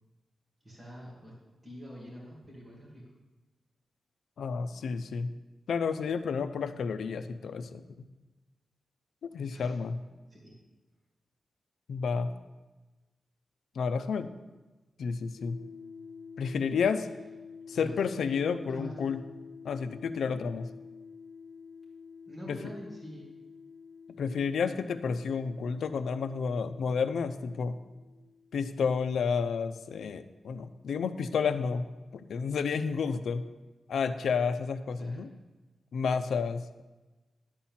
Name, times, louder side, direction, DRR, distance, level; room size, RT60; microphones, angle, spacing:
voice 1, 0.6-1.3 1.6-3.0 9.5-9.7 10.3-10.6 17.7-18.0 18.7-19.1 22.3-23.4 35.0-35.3, equal, 15° right, -5 dB, 2.5 m, -45 dB
voice 2, 4.4-5.3 5.7-8.1 9.2-10.0 11.9-12.3 13.8-14.3 15.0-15.6 16.4-17.1 17.7-19.2 19.6-20.7 22.5-22.6 24.2-27.8 28.5-33.4 33.9-35.3 35.9-36.8, left 5 dB, 90° left, 11 dB, 0.5 m, -31 dB
sound 1, 15.4-29.3, left 5 dB, 20° left, 2.2 m, -49 dB
11.5 x 4.3 x 7.3 m, 1.2 s
wide cardioid pair, 145°, 0 cm